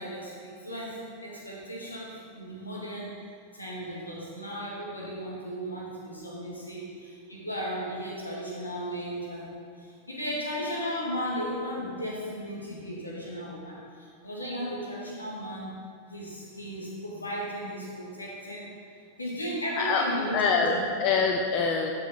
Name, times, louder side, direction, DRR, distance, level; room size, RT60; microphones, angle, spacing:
voice 1, 0.0-3.1 3.5-9.5 9.8-15.8 16.1-18.7 19.2-20.8, equal, 80° left, -4 dB, 1.8 m, -35 dB
voice 2, 19.8-20.1 20.3-21.9, left 5 dB, 40° left, 2 dB, 0.6 m, -25 dB
12.0 x 5.3 x 3.6 m, 2.2 s
figure-of-eight pair, 90°, 0 cm